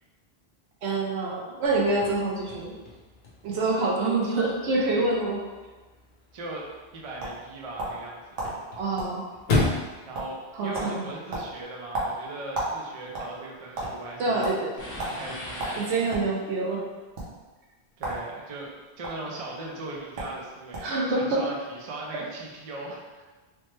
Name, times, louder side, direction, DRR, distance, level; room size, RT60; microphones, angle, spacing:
voice 1, 0.8-2.8 3.4-5.4 8.7-9.3 10.6-11.0 14.2-14.7 15.7-16.8 20.8-21.4, right 2 dB, 90° right, -2 dB, 0.9 m, -26 dB
Chirp tweet / Car / Slam, 1.7-11.6, left 3 dB, 50° left, 0.8 m, -35 dB
voice 2, 6.3-6.7 6.9-8.6 10.1-14.5 15.0-15.9 18.0-23.0, right 2 dB, 45° right, -2 dB, 0.5 m, -39 dB
sound 1, 6.6-8.1 8.4-8.5 9.0-9.1 9.4-9.9 10.1-10.5 10.7-10.9 11.3-12.8 13.1-13.9 14.4-14.6 15.0-15.2 15.6-16.3 17.1-17.3 18.0-18.2 18.5-19.1 19.8-19.9 20.2-20.4 20.7-21.0, right 2 dB, 65° right, 1.0 m, -32 dB
sound 2, 14.8-16.6, left 1 dB, 20° left, 0.5 m, -39 dB
3.2 x 2.0 x 3.2 m, 1.2 s
omnidirectional pair, 1.1 m